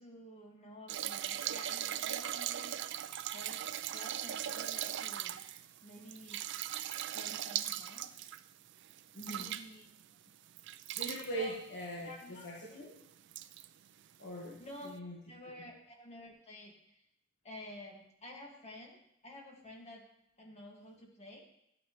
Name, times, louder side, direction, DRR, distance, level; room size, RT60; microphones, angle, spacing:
voice 1, 0.0-2.8 3.3-3.6 3.9-5.4 5.8-6.4 7.1-8.2 9.2-9.9 11.3-11.6 12.0-12.8 14.6-14.9 15.3-17.0 17.4-19.0 19.2-20.1 20.4-21.5, left 1 dB, 35° left, 0 dB, 1.9 m, -51 dB
sound 1, 0.9-10.0 10.6-11.3 12.2-12.3 12.6-12.7 13.3-13.7 14.7-14.8, right 11 dB, 60° right, 0.4 m, -39 dB
voice 2, 9.1-9.6 11.0-12.9 14.2-14.6 14.8-15.2, right 1 dB, 60° left, -4 dB, 1.6 m, -41 dB
11.0 x 9.2 x 3.1 m, 0.78 s
head